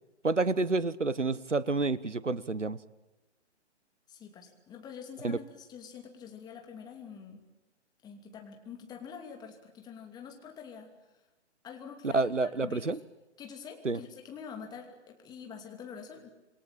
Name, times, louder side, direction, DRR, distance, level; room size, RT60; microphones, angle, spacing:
voice 1, 0.2-2.8 5.2-5.4 12.0-13.0 13.8-14.0, right 3 dB, 85° right, 19 dB, 1.1 m, -29 dB
voice 2, 4.1-7.4 8.0-10.9 11.6-13.0 13.4-16.3, left 6 dB, 10° left, 4 dB, 2.8 m, -46 dB
27.5 x 22.0 x 8.9 m, 1.0 s
figure-of-eight pair, 135°, 35 cm